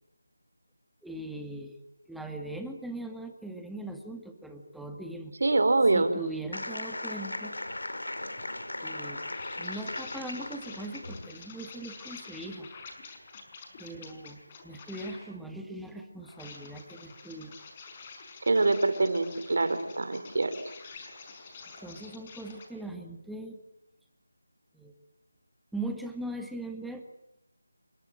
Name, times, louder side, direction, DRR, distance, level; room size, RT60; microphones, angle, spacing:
voice 1, 1.0-1.8 2.1-5.3 5.9-7.6 8.8-9.2 9.6-12.7 13.8-17.5 21.8-23.6 24.7-24.9 25.7-27.1, right 1 dB, ahead, 4 dB, 1.9 m, -40 dB
voice 2, 5.4-6.1 18.4-20.7, right 3 dB, 60° right, 11 dB, 4.5 m, -25 dB
sound 1, 6.5-11.2, left 1 dB, 85° left, 5.3 m, -37 dB
sound 2, 8.4-15.3 16.1-22.7, left 4 dB, 25° left, 5.4 m, -48 dB
29.0 x 23.5 x 7.8 m, 0.86 s
figure-of-eight pair, 165°, 0 cm